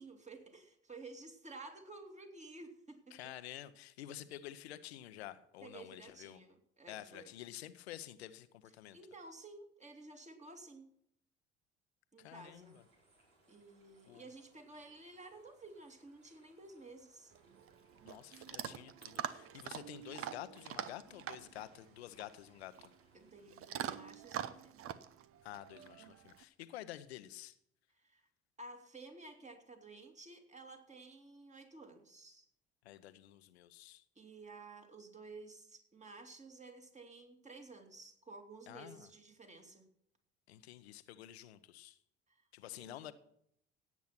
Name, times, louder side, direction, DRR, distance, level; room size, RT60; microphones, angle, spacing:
voice 1, 0.0-3.3 5.6-7.3 8.9-10.9 12.1-12.8 13.5-17.3 23.1-24.9 28.0-28.3 28.6-32.5 34.2-39.8 42.3-42.4 42.7-43.1, right 3 dB, 20° right, 5 dB, 2.7 m, -53 dB
voice 2, 3.1-6.4 6.9-9.0 12.2-12.8 14.0-14.3 18.0-22.9 25.4-27.6 32.8-34.0 38.7-39.1 40.5-42.0 42.5-43.1, left 13 dB, 75° left, 13 dB, 0.9 m, -50 dB
sound 1, 12.3-23.4, right 2 dB, 70° right, 4.7 m, -71 dB
Chewing mastication / Dog, 17.3-26.4, right 10 dB, 45° right, 0.9 m, -45 dB
17.0 x 8.3 x 6.0 m, 0.72 s
figure-of-eight pair, 60°, 32 cm